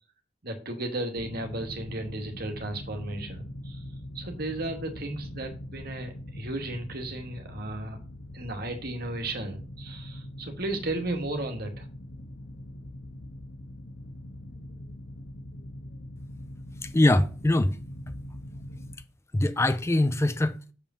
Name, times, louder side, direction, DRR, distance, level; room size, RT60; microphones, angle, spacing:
voice 1, 0.4-3.8 4.1-8.0 8.3-11.9, right 2 dB, 55° right, 2.1 m, -34 dB
sound 1, 1.2-18.9, left 1 dB, 80° left, 1.5 m, -42 dB
voice 2, 16.8-17.8 19.3-20.7, left 1 dB, 15° left, 0.4 m, -23 dB
7.0 x 5.2 x 7.1 m
head